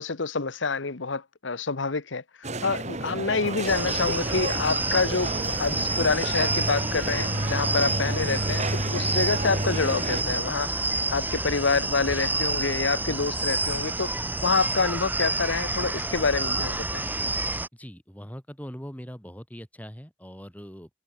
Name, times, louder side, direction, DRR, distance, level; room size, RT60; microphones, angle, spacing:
voice 1, 0.0-5.3 5.6-14.1 14.4-17.1, left 4 dB, 75° left, 1.2 m, -27 dB
sound 1, 2.4-10.2, right 2 dB, 35° right, 2.6 m, -31 dB
sound 2, 3.7-17.7, right 2 dB, 10° right, 2.0 m, -29 dB
voice 2, 17.7-20.9, equal, 10° left, 7.2 m, -41 dB
head